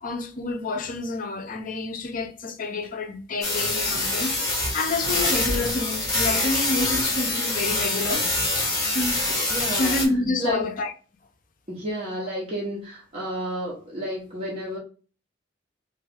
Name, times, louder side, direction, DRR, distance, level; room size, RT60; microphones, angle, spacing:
voice 1, 0.0-8.3 8.9-10.9, left 3 dB, 45° left, 0.5 m, -29 dB
sound 1, 3.4-10.1, left 2 dB, 15° left, 1.3 m, -25 dB
voice 2, 9.5-10.1 10.4-10.7 11.7-14.8, equal, 30° right, 0.9 m, -31 dB
3.1 x 2.4 x 3.4 m
head